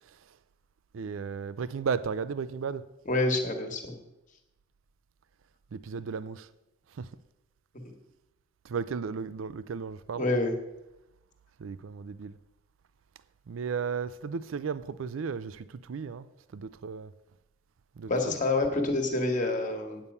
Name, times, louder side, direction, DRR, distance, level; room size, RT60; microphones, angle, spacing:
voice 1, 0.9-2.9 5.7-6.5 6.9-7.1 8.6-10.3 11.6-12.4 13.5-16.3 16.5-17.1 18.0-18.3, right 6 dB, 80° right, 0.4 m, -34 dB
voice 2, 3.0-4.0 10.1-10.5 18.1-20.0, left 2 dB, 40° left, 1.6 m, -27 dB
9.0 x 8.4 x 5.5 m
head